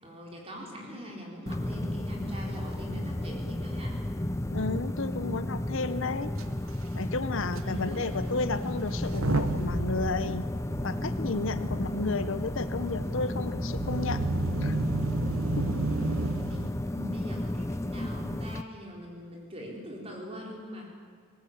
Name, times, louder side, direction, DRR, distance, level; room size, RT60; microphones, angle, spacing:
voice 1, 0.0-4.0 7.6-8.1 11.9-12.1 16.5-20.9, equal, 25° right, -1 dB, 4.0 m, -42 dB
sound 1, 1.5-18.6, left 1 dB, 15° left, 0.5 m, -33 dB
voice 2, 4.5-6.3 6.9-10.4 10.8-14.2 14.6-14.8 15.6-15.7, left 3 dB, 60° left, 12 dB, 0.8 m, -32 dB
Motor vehicle (road) / Engine starting / Accelerating revving vroom, 6.4-6.5 6.7-6.9 7.6-7.7 8.9-16.7, right 2 dB, 70° right, 1.0 m, -32 dB
20.0 x 18.5 x 8.6 m, 2.1 s
head